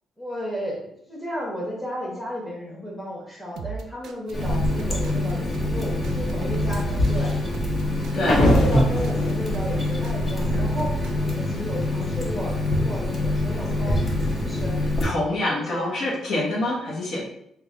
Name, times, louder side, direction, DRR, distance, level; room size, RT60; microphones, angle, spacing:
voice 1, 0.2-7.5 8.1-14.0 14.4-14.8 15.3-15.9 16.6-16.7, equal, 10° left, -4 dB, 1.4 m, -33 dB
sound 1, 3.6-11.3, right 6 dB, 80° right, 0.3 m, -33 dB
Water tap faucet, 4.3-15.0, left 2 dB, 40° left, 0.9 m, -26 dB
sound 2, 4.4-5.1 5.6-10.4, left 1 dB, 90° left, 1.0 m, -24 dB
voice 2, 8.1-8.4 15.0-17.3, left 1 dB, 65° left, -4 dB, 1.0 m, -26 dB
3.1 x 2.4 x 3.7 m, 0.75 s
cardioid pair, 90°, 0 cm